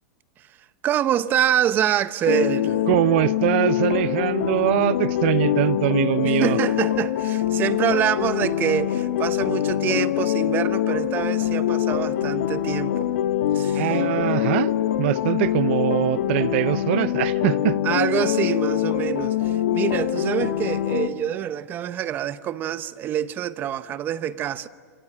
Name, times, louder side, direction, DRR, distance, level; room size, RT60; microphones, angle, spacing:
voice 1, 0.8-2.9 6.2-13.1 13.5-13.9 17.8-24.7, right 10 dB, 25° right, 0.8 m, -26 dB
sound 1, 2.3-21.1, left 11 dB, 80° left, 1.9 m, -24 dB
voice 2, 2.9-6.6 13.7-14.7 15.0-17.8, right 16 dB, 50° right, 0.8 m, -22 dB
29.0 x 26.0 x 7.5 m
supercardioid pair, 155°, 8 cm